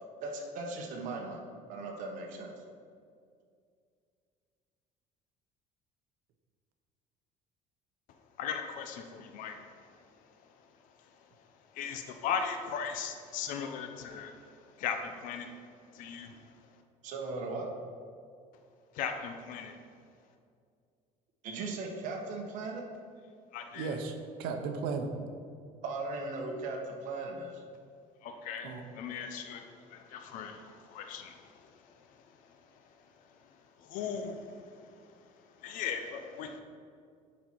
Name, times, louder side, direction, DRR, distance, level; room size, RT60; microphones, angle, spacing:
voice 1, 0.2-1.4 1.7-2.5 17.0-17.7 21.4-22.8 25.8-27.6, right 3 dB, 60° right, 0 dB, 1.2 m, -38 dB
voice 2, 8.4-10.7 11.0-11.3 11.7-15.6 15.9-16.5 18.9-19.8 23.5-24.0 28.2-33.5 33.9-34.3 34.7-36.6, left 7 dB, 65° left, 6 dB, 0.7 m, -39 dB
voice 3, 23.8-25.1 28.6-28.8, right 4 dB, 80° right, 5 dB, 0.9 m, -35 dB
10.0 x 4.3 x 4.6 m, 2.3 s
cardioid pair, 155°, 15 cm